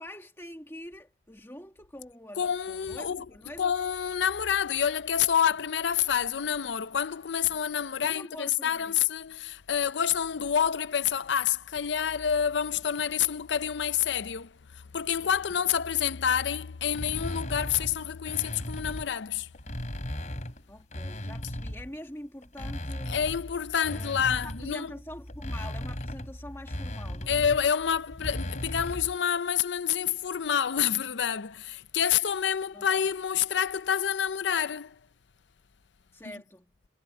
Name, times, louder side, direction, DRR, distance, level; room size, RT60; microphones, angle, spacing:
voice 1, 0.0-3.7 8.0-9.0 20.7-23.2 23.9-27.4 32.7-32.9 36.1-36.7, left 1 dB, 15° left, 2.0 m, -45 dB
voice 2, 2.4-3.2 3.6-19.5 23.1-24.9 27.3-35.0, left 8 dB, 75° left, 0.5 m, -28 dB
sound 1, 16.9-19.1 19.5-22.0 22.4-29.2, left 1 dB, 40° left, 3.6 m, -37 dB
head